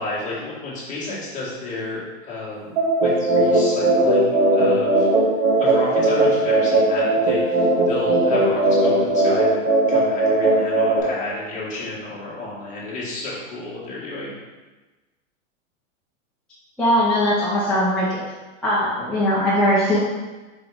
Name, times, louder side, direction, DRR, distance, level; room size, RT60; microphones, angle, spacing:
voice 1, 0.0-2.7 3.0-5.1 5.6-14.4, left 2 dB, 20° left, -7 dB, 1.9 m, -31 dB
sound 1, 2.8-11.0, right 2 dB, 60° right, 1.8 m, -18 dB
voice 2, 16.8-18.2 18.6-20.0, equal, ahead, -12 dB, 0.9 m, -20 dB
5.0 x 4.2 x 4.8 m, 1.2 s
supercardioid pair, 155°, 39 cm